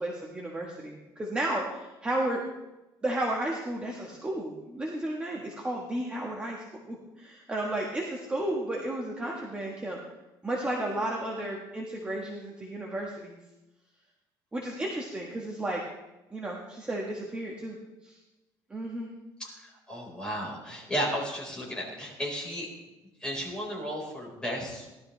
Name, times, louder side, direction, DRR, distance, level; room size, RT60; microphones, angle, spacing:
voice 1, 0.0-2.4 3.0-10.0 10.4-13.4 14.5-15.8 16.3-17.8 18.0-18.2 18.7-19.1, right 1 dB, 10° right, -2 dB, 1.5 m, -33 dB
voice 2, 19.4-22.7 23.2-25.0, equal, 10° left, -3 dB, 4.6 m, -34 dB
18.5 x 12.5 x 3.3 m, 1.0 s
cardioid pair, 155°, 9 cm